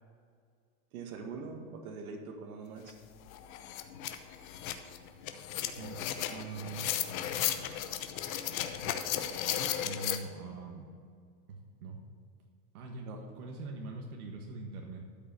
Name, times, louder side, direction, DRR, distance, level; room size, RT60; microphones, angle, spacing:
voice 1, 0.9-3.0 13.0-13.2, right 4 dB, 70° right, 3 dB, 1.9 m, -43 dB
sound 1, 2.9-3.0 3.3-10.2, left 11 dB, 65° left, 1.0 m, -35 dB
voice 2, 5.6-6.0 6.3-6.9 9.7-10.8 11.5-12.0 12.7-15.0, right 4 dB, 90° right, 1 dB, 1.6 m, -43 dB
12.5 x 5.2 x 6.8 m, 2.1 s
supercardioid pair, 155°, 43 cm